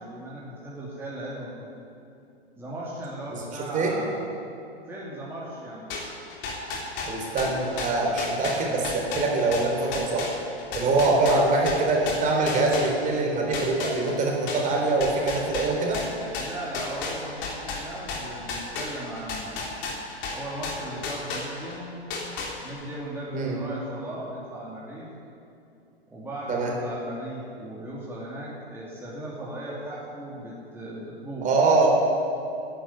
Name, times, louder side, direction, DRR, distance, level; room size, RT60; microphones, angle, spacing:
voice 1, 0.0-1.7 2.5-4.2 4.9-5.9 10.8-11.2 16.4-19.7 20.3-22.0 22.6-25.1 26.1-31.5, right 1 dB, 5° right, -7 dB, 2.9 m, -37 dB
sound 1, 5.9-13.2 13.5-21.8 22.1-22.9, left 4 dB, 35° left, 3.3 m, -33 dB
voice 2, 7.1-10.3 10.7-16.0 23.3-23.6 26.5-26.7 31.4-31.9, right 3 dB, 25° right, 0 dB, 3.7 m, -24 dB
12.5 x 10.5 x 9.7 m, 2.7 s
hypercardioid pair, 115°, 32 cm